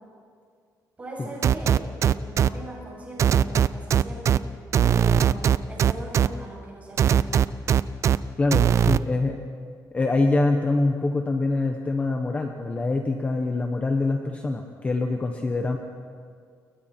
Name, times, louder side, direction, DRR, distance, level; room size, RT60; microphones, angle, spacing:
voice 1, 1.0-4.4 4.8-7.4, right 1 dB, 20° right, -4 dB, 7.8 m, -40 dB
sound 1, 1.4-2.5 3.2-4.4 4.7-6.3 7.0-8.2 8.5-9.0, right 8 dB, 45° right, 0.4 m, -19 dB
voice 2, 8.4-9.4 9.9-15.8, left 2 dB, 20° left, 4 dB, 1.0 m, -24 dB
29.5 x 22.0 x 4.4 m, 2.2 s
cardioid pair, 180°, 7 cm